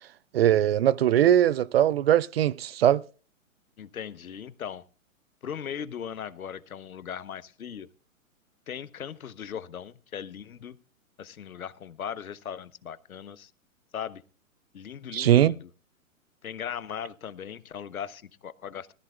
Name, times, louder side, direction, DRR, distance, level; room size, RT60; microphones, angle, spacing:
voice 1, 0.3-3.0 15.1-15.5, right 11 dB, 45° right, 0.5 m, -21 dB
voice 2, 3.8-4.8 5.4-7.9 8.7-10.8 11.2-13.5 13.9-14.2 14.7-15.7 16.4-18.9, left 8 dB, 80° left, 0.9 m, -38 dB
20.0 x 14.0 x 2.3 m
figure-of-eight pair, 120°, 42 cm